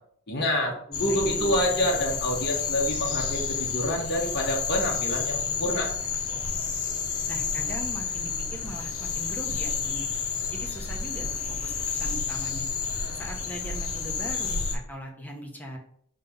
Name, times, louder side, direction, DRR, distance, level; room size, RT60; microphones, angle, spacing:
voice 1, 0.3-0.7 1.0-5.9, equal, 50° left, -1 dB, 1.7 m, -27 dB
sound 1, 0.9-14.8, left 5 dB, 80° left, 1.5 m, -30 dB
voice 2, 0.9-1.5 7.3-10.1 10.5-11.3 11.6-12.7 13.1-15.8, equal, 10° left, 0 dB, 1.3 m, -40 dB
6.6 x 3.9 x 5.5 m, 0.64 s
head